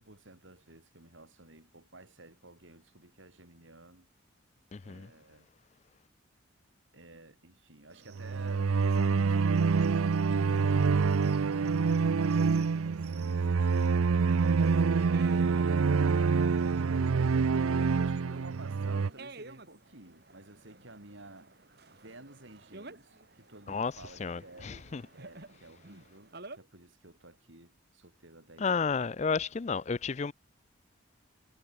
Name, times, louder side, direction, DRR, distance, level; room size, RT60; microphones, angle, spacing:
voice 1, 0.0-4.1 4.8-5.5 6.9-10.8 11.7-15.4 16.7-21.5 21.9-24.7 25.1-28.8, right 2 dB, 65° right, 4.4 m, -53 dB
voice 2, 4.7-5.1 23.7-23.9 24.2-25.0 28.6-30.3, left 5 dB, 35° left, 0.4 m, -32 dB
sound 1, 7.9-26.6, right 3 dB, 50° right, 2.6 m, -53 dB
sound 2, 8.1-19.1, right 5 dB, 90° right, 0.5 m, -26 dB
head